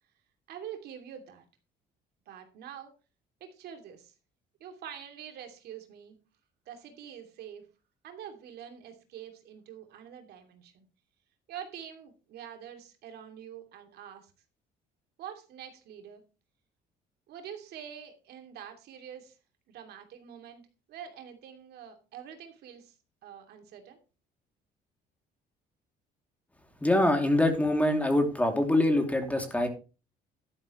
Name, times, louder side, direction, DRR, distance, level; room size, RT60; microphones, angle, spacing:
voice 1, 0.5-1.4 2.3-2.9 3.4-4.1 4.6-6.2 6.7-7.7 8.0-10.9 11.5-14.3 15.2-16.2 17.3-19.4 19.7-22.9 23.2-24.0, right 9 dB, 70° right, 5 dB, 2.7 m, -45 dB
voice 2, 26.8-29.7, left 1 dB, 10° left, 5 dB, 2.8 m, -24 dB
11.5 x 11.0 x 3.1 m, 0.32 s
cardioid pair, 110°, 17 cm